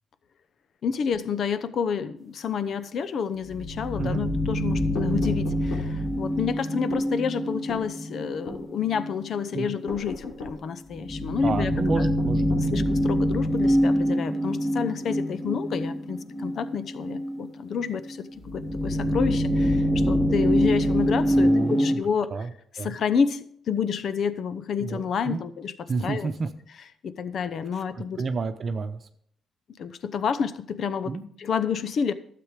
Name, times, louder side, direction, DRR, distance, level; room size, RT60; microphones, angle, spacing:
voice 1, 0.8-11.7 12.0-12.1 12.6-22.5 22.7-26.3 27.0-28.2 29.8-31.1 31.4-32.1, left 6 dB, 60° left, 14 dB, 0.8 m, -29 dB
sound 1, 3.5-9.4 9.8-9.9 10.9-17.4 17.8-18.1 18.4-21.9, equal, 5° left, 1.6 m, -25 dB
sound 2, 4.9-5.9 6.9-7.1 7.7-7.9 8.5-8.6 9.9-10.6 11.9-12.7, left 3 dB, 90° left, 3.7 m, -37 dB
voice 2, 11.4-12.8 21.4-22.0 22.3-22.5 22.8-22.9 24.8-25.4 25.9-26.5 27.8-27.9 28.2-29.0 31.0-31.2, right 4 dB, 45° right, 8 dB, 0.9 m, -30 dB
12.5 x 7.8 x 5.0 m, 0.65 s
cardioid pair, 90°, 0 cm